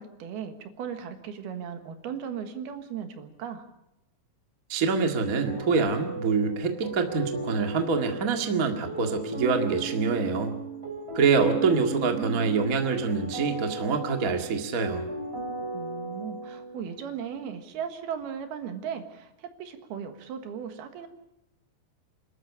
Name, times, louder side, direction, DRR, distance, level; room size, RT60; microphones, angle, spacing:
voice 1, 0.0-3.6 11.4-11.6 12.0-12.5 15.7-21.1, right 7 dB, 70° right, 7 dB, 3.3 m, -37 dB
voice 2, 4.7-10.5 11.1-15.1, right 4 dB, 45° right, 4 dB, 1.1 m, -25 dB
sound 1, 5.4-17.2, right 3 dB, 20° right, 2.3 m, -36 dB
27.5 x 13.0 x 8.5 m, 0.87 s
omnidirectional pair, 4.9 m